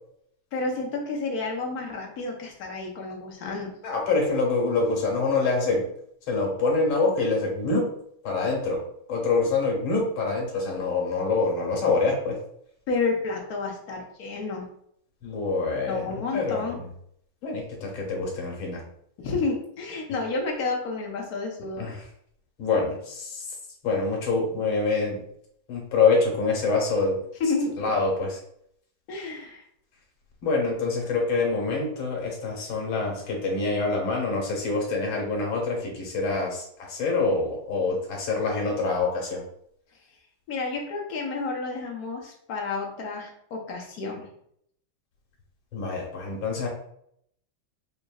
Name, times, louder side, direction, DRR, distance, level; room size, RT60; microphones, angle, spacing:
voice 1, 0.5-3.7 12.9-14.7 15.9-16.8 19.2-22.0 27.4-27.9 29.1-29.6 40.5-44.3, left 3 dB, 55° left, 0 dB, 1.2 m, -30 dB
voice 2, 3.8-5.9 6.3-7.9 8.2-8.8 9.1-12.4 15.2-16.7 17.4-18.8 21.8-22.0 22.6-23.4 23.8-25.2 25.7-27.2 27.8-28.4 30.4-39.4 45.7-46.7, left 3 dB, 85° left, -1 dB, 2.0 m, -25 dB
5.2 x 2.9 x 2.3 m, 0.69 s
omnidirectional pair, 2.2 m